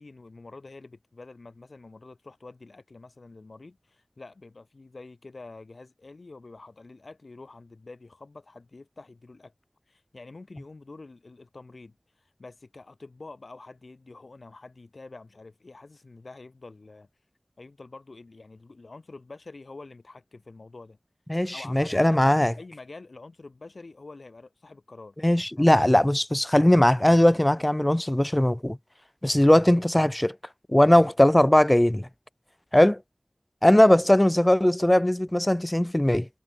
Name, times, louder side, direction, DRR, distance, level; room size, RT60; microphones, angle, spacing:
voice 1, 0.0-9.5 9.9-17.1 17.6-21.0 21.5-25.2 25.6-25.8, left 3 dB, 90° left, 6.3 m, -46 dB
voice 2, 21.3-22.5 25.2-28.8 29.2-30.3 30.7-32.1 32.7-33.0 33.6-36.3, left 1 dB, 20° left, 0.7 m, -19 dB
wide cardioid pair, 40°, 0 cm